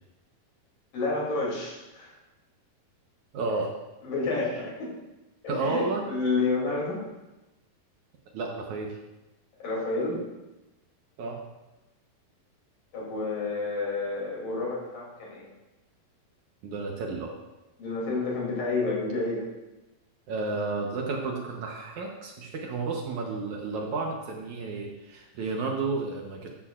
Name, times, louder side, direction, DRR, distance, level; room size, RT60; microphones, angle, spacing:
voice 1, 0.9-2.1 4.0-5.0 5.4-7.0 9.6-10.2 12.9-15.4 17.8-19.5, left 3 dB, 70° left, -4 dB, 4.7 m, -30 dB
voice 2, 3.3-3.7 5.5-6.1 8.3-9.0 11.2-11.4 16.6-17.3 20.3-26.5, right 3 dB, 65° right, 0 dB, 2.2 m, -31 dB
13.0 x 12.0 x 2.5 m, 1.0 s
omnidirectional pair, 4.1 m